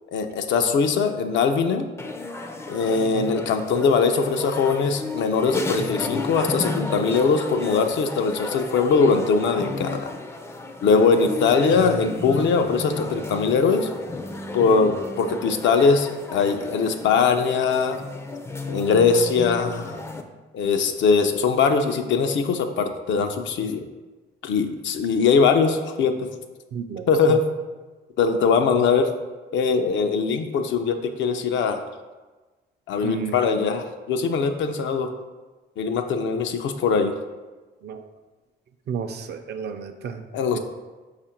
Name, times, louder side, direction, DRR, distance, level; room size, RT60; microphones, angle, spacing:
voice 1, 0.1-1.9 2.7-10.1 10.8-13.9 14.5-18.0 18.7-20.0 20.5-23.8 24.4-26.3 27.1-27.5 28.2-29.1 29.5-31.8 32.9-35.1 35.8-37.1 40.3-40.6, left 5 dB, 70° left, 6 dB, 0.5 m, -21 dB
sound 1, 2.0-20.2, left 3 dB, 15° left, 0.4 m, -33 dB
voice 2, 26.7-27.1 33.0-33.3 37.8-38.0 38.9-40.2, right 6 dB, 55° right, 7 dB, 0.4 m, -32 dB
5.0 x 2.5 x 4.2 m, 1.3 s
cardioid pair, 90°, 20 cm